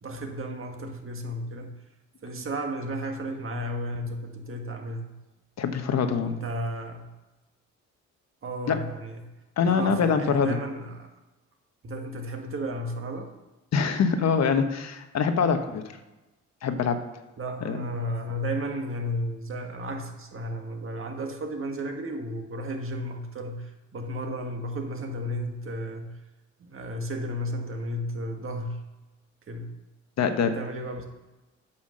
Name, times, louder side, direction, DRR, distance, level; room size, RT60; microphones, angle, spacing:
voice 1, 0.0-1.8 2.2-5.2 6.2-7.1 8.4-9.2 9.7-11.1 11.8-13.3 17.4-26.2 26.6-28.8 29.5-29.7 30.4-31.0, equal, 45° right, 3 dB, 1.8 m, -33 dB
voice 2, 5.6-6.3 8.7-8.8 9.6-10.6 13.7-15.8 16.6-17.0 17.6-17.9 30.2-30.5, left 6 dB, 60° left, 7 dB, 1.1 m, -24 dB
8.6 x 5.7 x 6.5 m, 1.1 s
cardioid pair, 90°, 30 cm